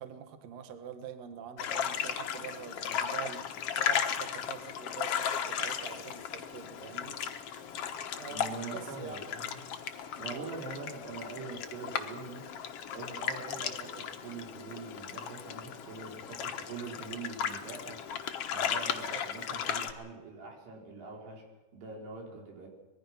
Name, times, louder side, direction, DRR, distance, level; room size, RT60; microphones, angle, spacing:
voice 1, 0.0-3.5 3.8-7.5 8.1-9.2 10.2-10.5 18.9-19.2, right 8 dB, 55° right, 7 dB, 2.2 m, -45 dB
sound 1, 1.6-19.9, left 8 dB, 80° left, 1.3 m, -36 dB
voice 2, 8.3-9.6 10.2-12.5 12.9-18.0 18.5-21.4 21.7-22.7, right 4 dB, 85° right, 1 dB, 6.1 m, -43 dB
24.5 x 21.0 x 5.8 m, 1.1 s
omnidirectional pair, 4.7 m